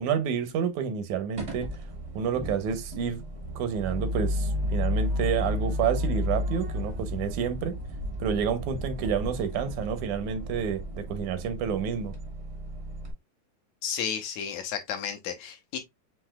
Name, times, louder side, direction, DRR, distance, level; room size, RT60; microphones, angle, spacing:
voice 1, 0.0-1.7 2.1-3.2 3.6-7.8 8.2-12.1, right 7 dB, 85° right, 2.2 m, -29 dB
sound 1, 1.4-13.1, left 1 dB, 65° right, 0.6 m, -32 dB
voice 2, 13.8-15.8, left 8 dB, 75° left, 2.1 m, -32 dB
7.6 x 2.8 x 2.2 m
omnidirectional pair, 3.3 m